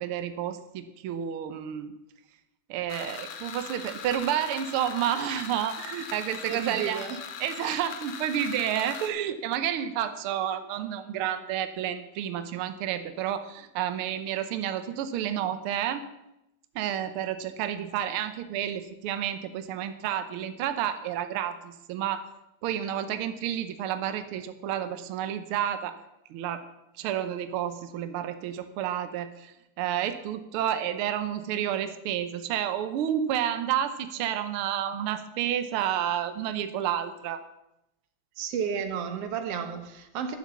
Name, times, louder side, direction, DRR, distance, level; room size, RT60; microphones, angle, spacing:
voice 1, 0.0-1.9 2.7-7.0 7.4-16.0 16.7-22.2 22.6-25.9 26.3-26.6 27.0-37.4, right 10 dB, 80° right, 10 dB, 1.2 m, -30 dB
sound 1, 2.9-9.1, left 6 dB, 75° left, 2.5 m, -40 dB
voice 2, 6.5-7.2 38.4-40.4, right 7 dB, 60° right, 7 dB, 2.0 m, -32 dB
11.5 x 7.3 x 7.0 m, 0.89 s
omnidirectional pair, 3.4 m